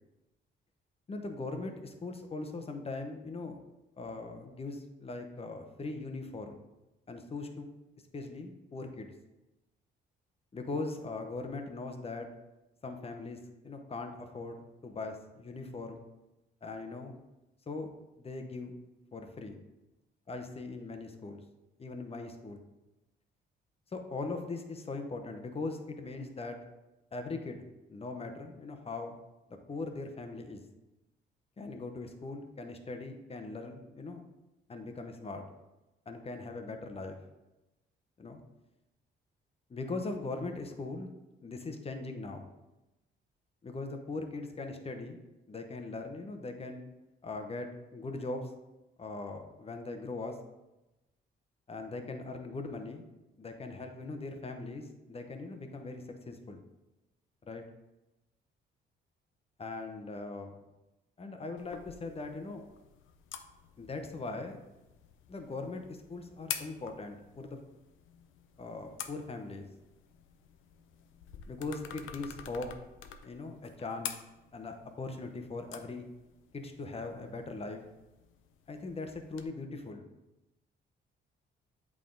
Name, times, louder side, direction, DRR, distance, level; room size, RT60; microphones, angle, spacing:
voice 1, 1.1-3.6 4.0-6.6 7.1-7.7 8.1-9.1 10.5-12.3 12.8-13.4 13.6-16.0 16.6-17.2 17.7-17.9 18.2-18.8 19.1-19.6 20.3-21.4 21.8-22.6 23.9-26.6 27.1-27.6 27.9-29.2 29.5-30.6 31.6-34.2 34.7-35.4 36.1-37.2 38.2-38.4 39.7-41.1 41.4-42.5 43.6-45.2 45.5-46.8 47.2-48.5 49.0-50.4 51.7-53.0 53.4-56.6 57.4-57.6 59.6-60.6 61.2-62.6 63.8-64.6 65.3-67.6 68.6-69.7 71.5-72.7 73.2-74.1 74.5-76.1 76.5-77.8 78.7-80.0, left 3 dB, 30° left, 5 dB, 0.9 m, -40 dB
sound 1, 61.6-79.4, left 9 dB, 85° left, 0.6 m, -48 dB
8.3 x 3.7 x 3.8 m, 1.0 s
cardioid pair, 90°, 20 cm